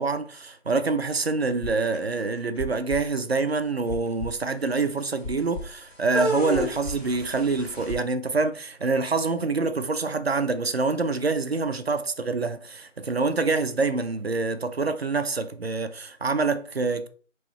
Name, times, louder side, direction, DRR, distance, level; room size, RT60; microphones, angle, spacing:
voice 1, 0.0-17.1, right 3 dB, 55° right, 0.5 m, -26 dB
sound 1, 1.6-2.2 2.6-3.0 3.5-3.6 3.9-4.3 5.2-5.6 6.1-7.9, equal, 25° left, 1.8 m, -31 dB
3.6 x 3.0 x 4.3 m
figure-of-eight pair, 175°, 38 cm